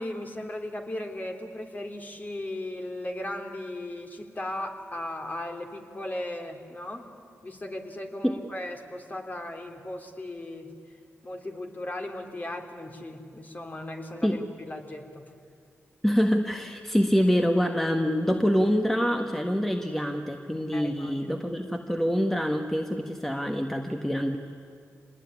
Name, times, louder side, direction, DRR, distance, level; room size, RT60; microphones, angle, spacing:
voice 1, 0.0-7.1 7.4-10.7 11.2-15.2 20.7-21.4, left 1 dB, 35° left, 3 dB, 3.3 m, -37 dB
voice 2, 16.0-24.4, equal, 5° left, 4 dB, 1.6 m, -25 dB
26.5 x 19.5 x 9.7 m, 2.4 s
cardioid pair, 60°, 5 cm